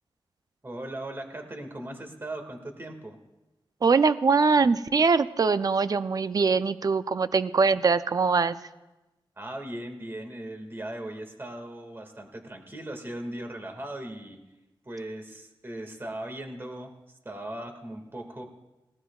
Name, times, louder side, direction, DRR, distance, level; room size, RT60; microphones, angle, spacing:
voice 1, 0.6-3.2 9.4-14.4 14.8-16.9 17.2-18.4, right 1 dB, 25° right, 4 dB, 2.0 m, -38 dB
voice 2, 3.8-8.6, right 4 dB, 45° right, 12 dB, 0.5 m, -22 dB
19.0 x 17.5 x 2.4 m, 1.0 s
wide cardioid pair, 120°, 9 cm